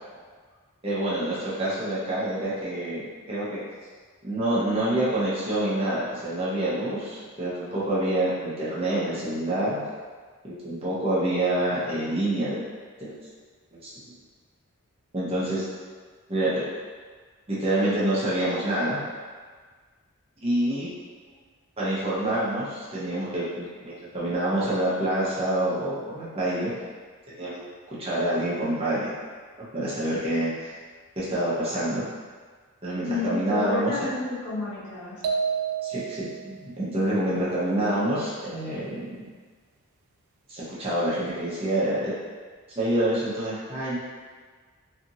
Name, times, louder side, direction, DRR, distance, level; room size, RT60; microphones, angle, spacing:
voice 1, 0.8-3.6 4.2-9.8 10.4-12.6 13.0-13.1 13.7-13.9 15.1-15.6 16.3-16.6 17.5-19.1 20.4-20.9 21.8-26.7 27.4-27.6 27.9-29.1 29.7-30.7 31.2-32.0 32.8-34.1 35.8-39.2 40.5-42.1 42.8-44.0, right 1 dB, 25° right, -9 dB, 0.7 m, -27 dB
voice 2, 33.1-35.1, left 3 dB, 85° left, -10 dB, 1.2 m, -30 dB
sound 1, 35.2-36.4, right 6 dB, 90° right, 0.3 m, -28 dB
2.7 x 2.5 x 2.6 m, 1.5 s
head